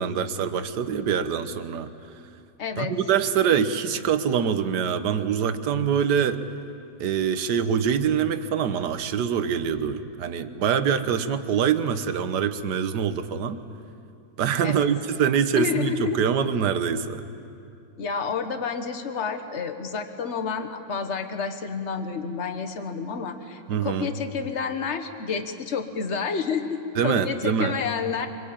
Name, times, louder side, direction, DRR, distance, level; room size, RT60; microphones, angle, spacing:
voice 1, 0.0-1.9 2.8-6.4 7.0-13.6 14.4-17.2 23.7-24.1 27.0-27.7, right 7 dB, 65° right, 10 dB, 1.6 m, -24 dB
voice 2, 2.6-2.9 14.6-14.9 15.5-16.2 18.0-28.3, left 6 dB, 40° left, 7 dB, 1.5 m, -29 dB
25.0 x 22.5 x 8.8 m, 2.5 s
omnidirectional pair, 2.0 m